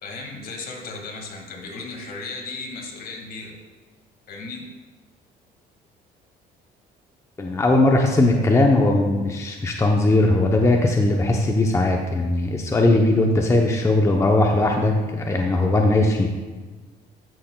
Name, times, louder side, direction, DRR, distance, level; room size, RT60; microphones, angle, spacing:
voice 1, 0.0-3.6 4.3-4.7, left 3 dB, 60° left, 1 dB, 1.9 m, -35 dB
voice 2, 7.4-16.3, left 2 dB, 15° left, 1 dB, 0.7 m, -19 dB
13.5 x 6.5 x 2.2 m, 1.3 s
cardioid pair, 110°, 17 cm